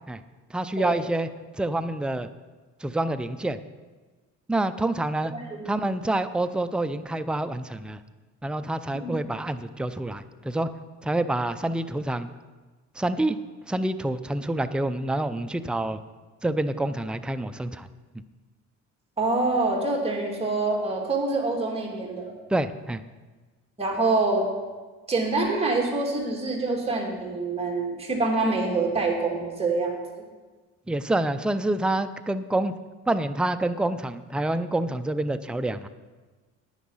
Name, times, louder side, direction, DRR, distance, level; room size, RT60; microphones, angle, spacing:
voice 1, 0.5-1.3 1.6-2.3 2.8-3.6 4.5-5.3 5.7-8.0 8.4-10.7 11.0-12.3 13.0-13.4 13.7-16.0 16.4-17.9 22.5-23.0 30.9-32.7 33.1-35.9, right 1 dB, 5° right, 10 dB, 0.5 m, -27 dB
voice 2, 5.3-5.6 8.9-9.2 19.2-22.3 23.8-24.5 25.1-30.2, right 3 dB, 20° right, 0 dB, 2.5 m, -26 dB
9.9 x 9.6 x 5.6 m, 1.3 s
cardioid pair, 90°, 30 cm